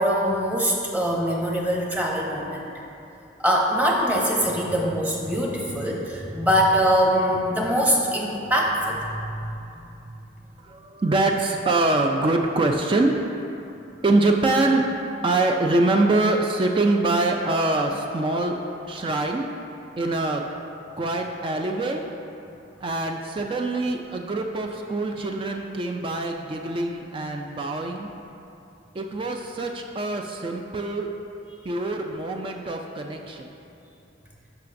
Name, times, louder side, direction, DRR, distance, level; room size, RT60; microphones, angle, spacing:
voice 1, 0.0-2.7 3.4-9.5, equal, 10° right, -2 dB, 0.8 m, -23 dB
voice 2, 10.7-13.2 14.0-14.9 15.2-18.6 18.8-19.5 20.0-20.4 21.0-22.0 22.8-28.1 28.9-31.1 31.7-33.5, right 2 dB, 25° right, 3 dB, 0.3 m, -24 dB
11.5 x 5.8 x 2.6 m, 2.8 s
head